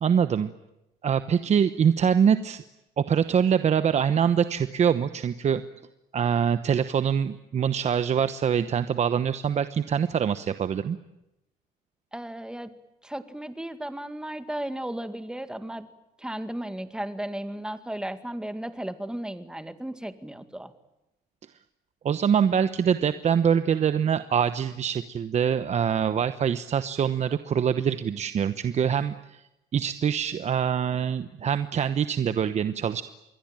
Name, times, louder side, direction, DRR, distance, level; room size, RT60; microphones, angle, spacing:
voice 1, 0.0-0.5 1.0-2.6 3.0-5.6 6.1-11.0 22.0-29.4 29.7-33.0, right 7 dB, 40° right, 11 dB, 1.1 m, -24 dB
voice 2, 12.1-12.7 13.0-15.9 16.2-20.7, right 1 dB, 5° right, 10 dB, 2.0 m, -35 dB
27.5 x 22.0 x 9.1 m, 0.92 s
cardioid pair, 110°, 17 cm